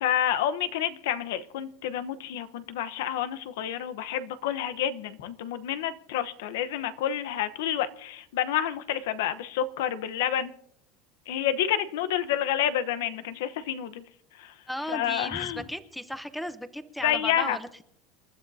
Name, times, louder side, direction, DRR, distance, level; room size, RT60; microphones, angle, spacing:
voice 1, 0.0-10.5 11.3-14.0 14.4-14.5 14.9-15.7 17.0-17.6, left 10 dB, 85° left, 13 dB, 1.0 m, -29 dB
voice 2, 14.7-17.8, equal, ahead, 11 dB, 0.7 m, -36 dB
28.0 x 12.0 x 2.8 m, 0.72 s
supercardioid pair, 160°, 0 cm